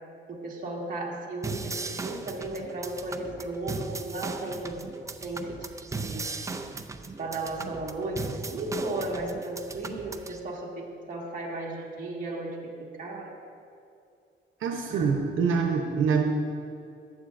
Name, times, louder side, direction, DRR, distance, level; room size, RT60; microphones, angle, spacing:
voice 1, 0.3-4.8 5.2-5.6 5.8-6.5 7.2-13.4 14.9-15.3, right 2 dB, 40° right, -3 dB, 1.8 m, -35 dB
sound 1, 1.4-10.4, right 3 dB, 15° right, 0.4 m, -37 dB
voice 2, 14.6-16.2, right 5 dB, 90° right, 2 dB, 0.8 m, -25 dB
14.5 x 9.6 x 2.6 m, 2.5 s
cardioid pair, 140°, 20 cm